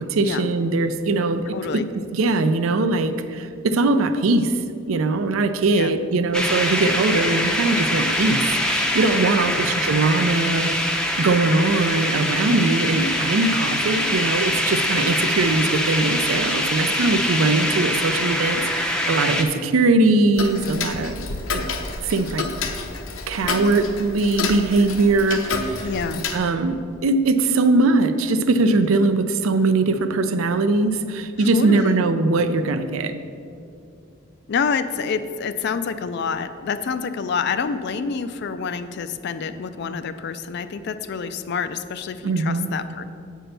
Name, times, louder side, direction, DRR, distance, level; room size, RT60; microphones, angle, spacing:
voice 1, 0.0-4.6 4.9-10.7 11.2-21.2 21.5-21.7 22.0-22.5 23.3-25.9 26.3-33.1 42.2-42.7, right 3 dB, 75° right, 10 dB, 0.5 m, -21 dB
voice 2, 1.5-1.9 5.8-5.9 9.5-9.6 25.8-26.2 31.4-32.0 34.5-43.0, left 5 dB, 55° left, 11 dB, 0.4 m, -27 dB
sound 1, 6.3-19.4, left 1 dB, 5° left, 0.5 m, -23 dB
Tick-tock, 20.4-26.4, left 4 dB, 75° left, 0.8 m, -29 dB
7.8 x 4.6 x 6.6 m, 2.4 s
head